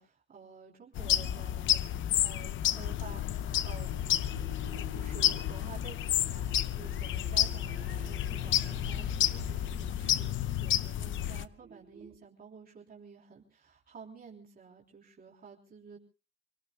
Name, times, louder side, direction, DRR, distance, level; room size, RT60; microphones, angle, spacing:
voice 1, 0.0-1.9 2.2-3.2 3.6-3.9 4.9-16.0, right 6 dB, 45° right, -2 dB, 3.4 m, -51 dB
sound 1, 1.0-11.5, left 12 dB, 75° left, 0.7 m, -31 dB
sound 2, 2.7-12.2, right 8 dB, 80° right, 3.4 m, -51 dB
28.5 x 18.5 x 2.2 m, 0.33 s
cardioid pair, 90°, 20 cm